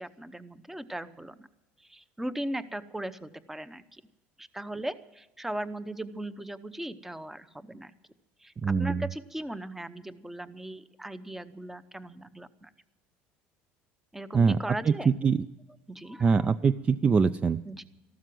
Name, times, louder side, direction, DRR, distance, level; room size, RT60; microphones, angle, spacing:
voice 1, 0.0-1.5 1.8-4.0 4.4-7.9 8.4-12.7 14.1-15.2 15.9-16.5 17.6-17.8, right 1 dB, 5° right, 14 dB, 0.8 m, -38 dB
voice 2, 8.6-9.0 14.3-14.6 14.9-15.4 16.2-17.6, right 5 dB, 25° right, 14 dB, 0.5 m, -23 dB
14.5 x 12.5 x 7.6 m, 0.99 s
cardioid pair, 125°, 5 cm